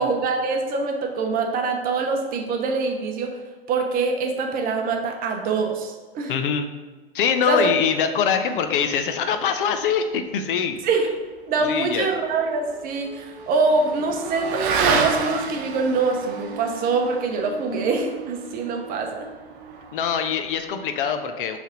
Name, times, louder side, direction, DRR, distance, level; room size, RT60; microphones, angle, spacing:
voice 1, 0.0-3.3 3.7-6.3 7.5-7.7 10.8-11.1 11.5-19.3, right 4 dB, 25° right, 3 dB, 0.8 m, -24 dB
voice 2, 6.3-6.7 7.1-10.8 11.6-12.2 19.9-21.6, left 7 dB, 55° left, 7 dB, 0.7 m, -23 dB
Motorcycle / Accelerating revving vroom, 11.8-20.6, right 5 dB, 55° right, 0.9 m, -30 dB
6.3 x 3.5 x 5.1 m, 1.3 s
hypercardioid pair, 110°, 32 cm